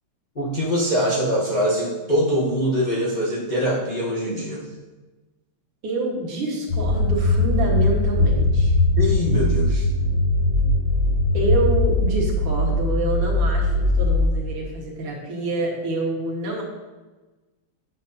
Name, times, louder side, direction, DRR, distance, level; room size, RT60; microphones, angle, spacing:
voice 1, 0.3-4.7 9.0-9.8, equal, 30° left, -6 dB, 0.9 m, -23 dB
voice 2, 5.8-8.7 11.3-16.6, right 2 dB, 85° right, -4 dB, 2.4 m, -27 dB
sound 1, 6.7-14.2, left 2 dB, 75° left, 2.6 m, -20 dB
8.9 x 6.9 x 2.7 m, 1.2 s
omnidirectional pair, 2.4 m